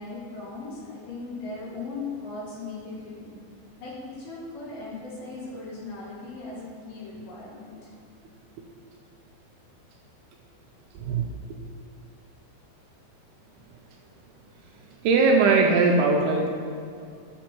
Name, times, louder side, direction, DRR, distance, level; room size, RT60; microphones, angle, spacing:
voice 1, 0.0-3.4 3.8-7.9, left 3 dB, 80° left, -7 dB, 4.3 m, -38 dB
voice 2, 10.9-11.3 15.0-16.5, right 3 dB, 80° right, 0 dB, 2.4 m, -20 dB
11.5 x 7.9 x 3.0 m, 2.3 s
omnidirectional pair, 5.0 m